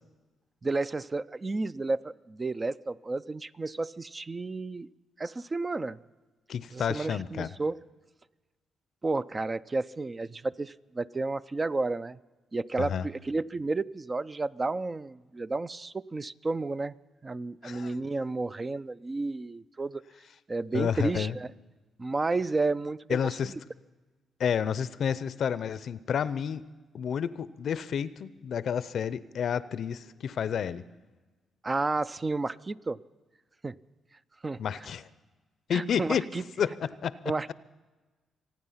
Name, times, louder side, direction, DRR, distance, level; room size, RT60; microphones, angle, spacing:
voice 1, 0.6-4.9 5.2-6.0 6.7-7.8 9.0-12.2 12.5-16.9 17.2-20.0 20.5-21.5 22.0-23.2 31.6-33.0 33.6-33.7 34.4-34.6 35.7-36.4 37.3-37.5, right 3 dB, 30° right, 15 dB, 0.4 m, -31 dB
voice 2, 6.5-7.5 12.8-13.1 17.6-17.9 20.7-21.4 23.1-23.5 24.4-26.6 26.9-30.8 34.6-35.1 35.7-36.3 36.6-37.5, left 8 dB, 65° left, 16 dB, 0.6 m, -30 dB
26.0 x 9.6 x 5.7 m, 1.2 s
cardioid pair, 65°, 0 cm